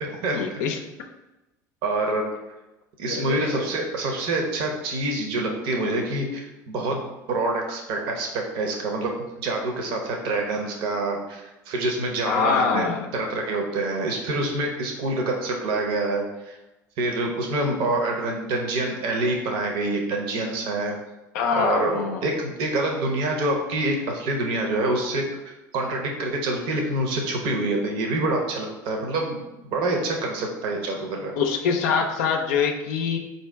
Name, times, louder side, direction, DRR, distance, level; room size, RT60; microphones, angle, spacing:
voice 1, 0.3-0.8 3.1-3.6 12.3-13.1 21.3-22.2 31.4-33.2, left 5 dB, 65° left, 3 dB, 0.5 m, -24 dB
voice 2, 1.8-2.3 3.0-12.9 13.1-16.6 17.0-21.0 21.5-25.2 25.7-31.3, right 2 dB, 55° right, 1 dB, 0.7 m, -26 dB
4.4 x 2.7 x 3.3 m, 1.0 s
figure-of-eight pair, 70°, 11 cm